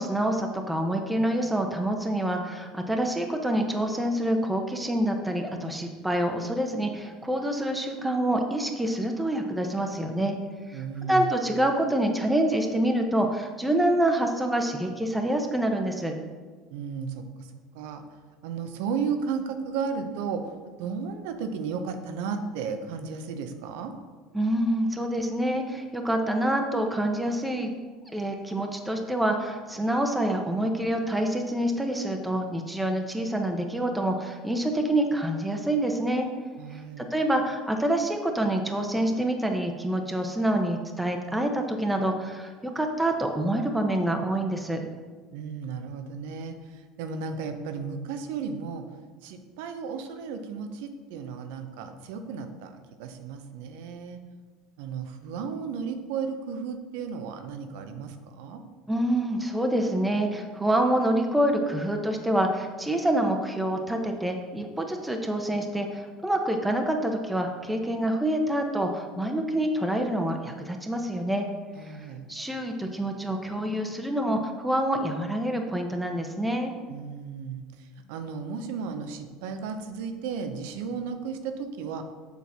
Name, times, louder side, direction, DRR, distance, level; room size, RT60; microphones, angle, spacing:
voice 1, 0.0-10.3 10.7-16.1 24.3-27.7 28.1-36.3 36.7-44.8 58.9-71.5 71.8-76.7, right 1 dB, 5° right, 3 dB, 1.0 m, -27 dB
voice 2, 10.7-11.3 16.7-17.5 17.7-18.0 18.4-20.5 20.8-23.9 36.6-37.0 45.3-48.9 49.2-52.7 53.0-54.2 54.8-58.6 71.8-72.3 76.9-82.0, right 6 dB, 75° right, 7 dB, 0.8 m, -34 dB
7.3 x 4.0 x 6.0 m, 1.4 s
hypercardioid pair, 85°, 0 cm